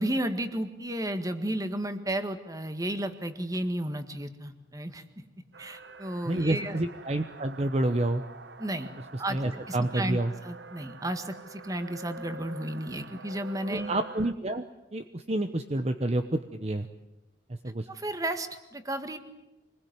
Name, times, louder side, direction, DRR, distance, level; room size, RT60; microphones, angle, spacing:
voice 1, 0.0-5.2 5.6-6.8 8.6-8.9 9.2-13.9 17.9-19.2, right 1 dB, 20° right, 9 dB, 1.8 m, -33 dB
sound 1, 5.5-14.3, right 3 dB, 70° right, 1.1 m, -46 dB
voice 2, 6.3-8.2 9.3-10.3 13.7-14.6 14.9-16.9 17.6-17.9, right 1 dB, 35° right, 8 dB, 1.0 m, -28 dB
26.0 x 21.0 x 9.5 m, 0.97 s
head